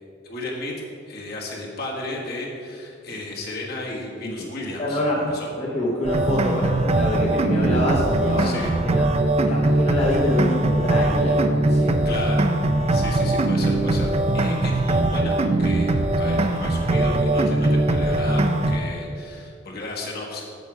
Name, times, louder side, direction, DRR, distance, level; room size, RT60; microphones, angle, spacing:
voice 1, 0.2-5.0 5.3-5.5 8.4-8.7 12.1-12.5 12.9-20.4, left 2 dB, 55° left, -2 dB, 1.6 m, -34 dB
voice 2, 4.8-9.0 9.5-11.4 11.7-12.2 19.6-19.8, left 1 dB, 30° left, -4 dB, 0.9 m, -26 dB
sound 1, 6.0-18.8, right 2 dB, 30° right, 0.4 m, -21 dB
8.1 x 7.5 x 4.8 m, 2.4 s
head